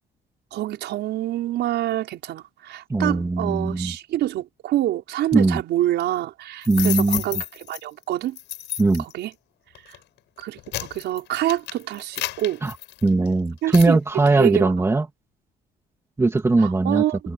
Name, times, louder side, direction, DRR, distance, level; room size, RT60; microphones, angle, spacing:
voice 1, 0.5-8.4 9.0-9.3 9.9-10.0 10.4-12.6 13.6-14.0 14.3-14.7 16.6-17.2, right 13 dB, 80° right, 5.8 m, -26 dB
voice 2, 2.9-3.9 5.3-5.6 6.7-7.2 8.8-9.0 12.6-12.7 13.0-15.0 16.2-17.0, right 3 dB, 15° right, 2.5 m, -19 dB
sound 1, 6.6-7.8 8.4-9.1 9.8-10.0 10.4-13.3 13.7-13.9, left 14 dB, 90° left, 7.0 m, -31 dB
cardioid pair, 140°, 18 cm